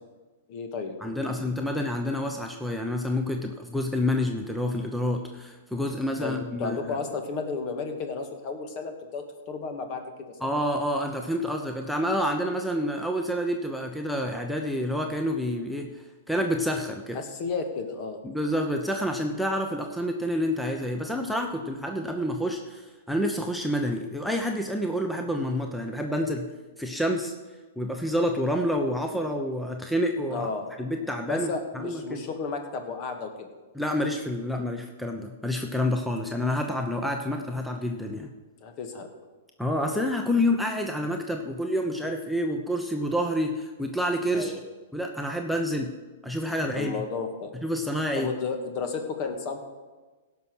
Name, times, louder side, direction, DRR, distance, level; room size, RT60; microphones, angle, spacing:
voice 1, 0.5-1.0 1.2-1.7 6.2-10.1 10.4-10.5 17.1-18.2 30.3-30.7 31.2-33.5 38.6-39.1 44.3-44.6 46.8-47.5 48.1-49.6, left 4 dB, 45° left, 5 dB, 1.9 m, -33 dB
voice 2, 1.0-6.8 10.4-17.2 18.2-26.5 26.8-27.3 27.8-30.5 30.8-32.2 33.8-38.3 39.6-44.5 44.9-45.9 46.2-47.0 47.6-48.3, equal, ahead, 2 dB, 0.9 m, -28 dB
16.5 x 5.9 x 6.3 m, 1.3 s
hypercardioid pair, 115°, 0 cm